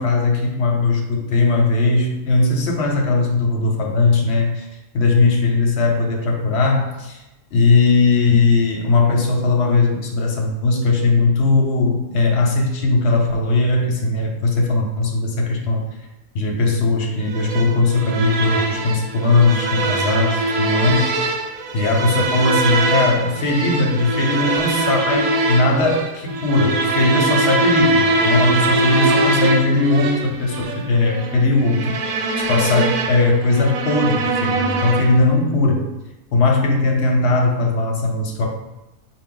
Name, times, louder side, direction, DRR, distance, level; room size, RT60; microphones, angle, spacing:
voice 1, 0.0-4.7 4.9-7.2 7.5-15.9 16.3-21.3 21.7-32.0 32.4-35.9 36.3-38.5, left 3 dB, 60° left, 1 dB, 0.8 m, -18 dB
sound 1, 17.3-35.3, right 2 dB, 85° right, 1.0 m, -22 dB
4.4 x 2.3 x 3.8 m, 1.0 s
omnidirectional pair, 1.5 m